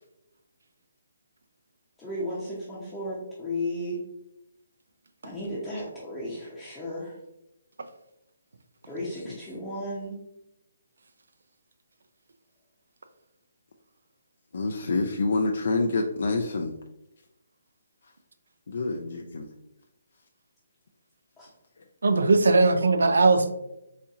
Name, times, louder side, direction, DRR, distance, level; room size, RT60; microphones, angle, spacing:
voice 1, 2.0-4.0 5.2-7.1 8.9-10.2 21.4-21.5, left 1 dB, 10° left, -9 dB, 0.6 m, -34 dB
voice 2, 9.0-9.4 14.5-16.7 18.7-19.5, left 3 dB, 60° left, 3 dB, 0.3 m, -27 dB
voice 3, 22.0-23.5, right 3 dB, 85° right, 9 dB, 0.4 m, -19 dB
4.0 x 2.8 x 2.4 m, 0.89 s
hypercardioid pair, 165°, 0 cm